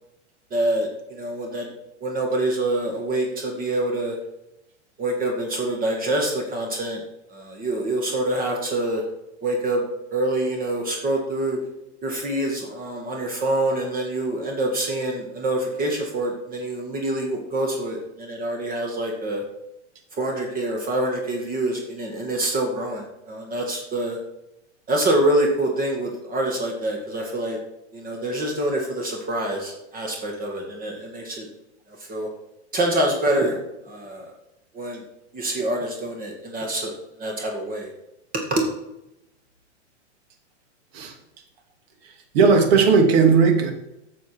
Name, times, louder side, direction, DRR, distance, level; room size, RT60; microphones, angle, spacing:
voice 1, 0.5-1.7 2.0-4.1 5.0-7.0 7.3-9.0 9.4-9.8 10.1-11.6 12.0-19.4 20.2-24.2 24.9-27.6 27.9-31.5 32.1-32.3 32.7-33.6 33.9-34.3 34.8-35.0 35.3-36.9 37.2-37.9 38.5-38.6, right 1 dB, 25° right, 1 dB, 2.0 m, -26 dB
voice 2, 42.3-43.7, right 5 dB, 55° right, 4 dB, 2.4 m, -16 dB
9.1 x 6.8 x 4.6 m, 0.87 s
hypercardioid pair, 115°, 36 cm